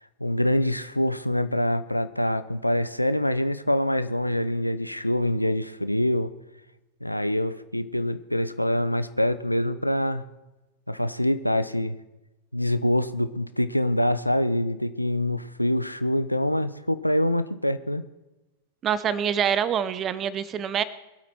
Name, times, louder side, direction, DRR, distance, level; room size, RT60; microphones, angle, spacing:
voice 1, 0.2-6.3 7.0-10.2 10.9-12.0 12.5-18.0, left 1 dB, 90° left, 12 dB, 0.6 m, -25 dB
voice 2, 18.8-20.8, right 8 dB, 30° right, 16 dB, 0.8 m, -25 dB
23.0 x 8.4 x 4.5 m, 1.0 s
figure-of-eight pair, 90°, 0 cm